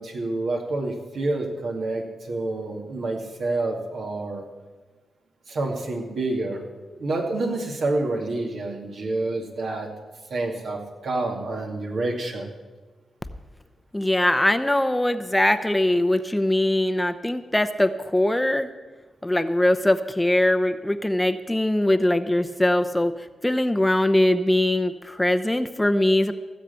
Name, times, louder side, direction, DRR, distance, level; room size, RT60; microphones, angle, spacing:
voice 1, 0.0-4.4 5.5-9.9 10.3-12.5, right 2 dB, 70° right, 1 dB, 2.3 m, -28 dB
voice 2, 13.9-18.7 19.2-23.1 23.4-26.3, left 1 dB, 10° left, 9 dB, 0.8 m, -21 dB
16.5 x 7.5 x 7.0 m, 1.3 s
supercardioid pair, 50°, 0 cm